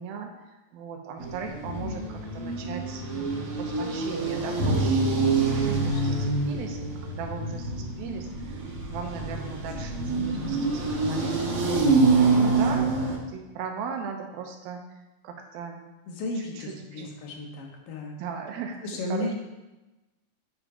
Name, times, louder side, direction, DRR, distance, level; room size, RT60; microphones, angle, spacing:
voice 1, 0.0-6.8 7.1-8.6 8.9-12.9 13.3-15.8 16.3-17.1 18.2-19.3, right 6 dB, 85° right, 3 dB, 2.7 m, -38 dB
sound 1, 1.2-13.2, right 3 dB, 50° right, 2.0 m, -26 dB
voice 2, 5.6-6.2 16.1-18.2 18.8-19.3, left 2 dB, 70° left, 1 dB, 2.8 m, -34 dB
8.9 x 5.0 x 5.0 m, 1.1 s
omnidirectional pair, 4.2 m